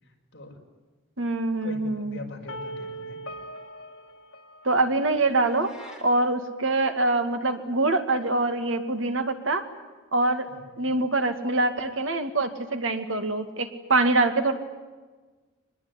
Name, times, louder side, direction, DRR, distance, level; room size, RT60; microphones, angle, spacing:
voice 1, 0.0-0.6 1.6-3.2 10.5-10.9, left 1 dB, 55° left, 1 dB, 5.3 m, -42 dB
voice 2, 1.2-2.2 4.6-9.6 10.1-10.5 10.8-14.5, right 2 dB, 70° right, 7 dB, 2.3 m, -24 dB
sound 1, 2.5-5.4, right 1 dB, 90° left, 1.9 m, -40 dB
sound 2, 5.5-6.1, left 1 dB, 5° right, 4.6 m, -48 dB
25.0 x 20.5 x 9.8 m, 1.3 s
head